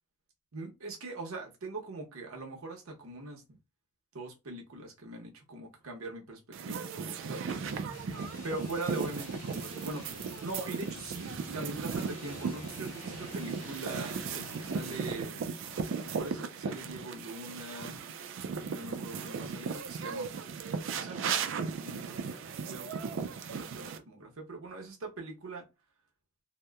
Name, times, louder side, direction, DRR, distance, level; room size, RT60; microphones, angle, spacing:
voice 1, 0.5-3.4 4.1-7.7 8.4-10.1 10.4-15.5 16.0-18.0 18.6-20.4 21.0-25.6, right 2 dB, 85° right, 0.8 m, -42 dB
sound 1, 6.5-24.0, right 5 dB, 60° right, 0.3 m, -37 dB
sound 2, 7.5-15.1, left 1 dB, 80° left, 1.4 m, -49 dB
Subway metro underground, 12.2-19.8, left 1 dB, 50° left, 1.0 m, -55 dB
2.8 x 2.0 x 2.2 m
head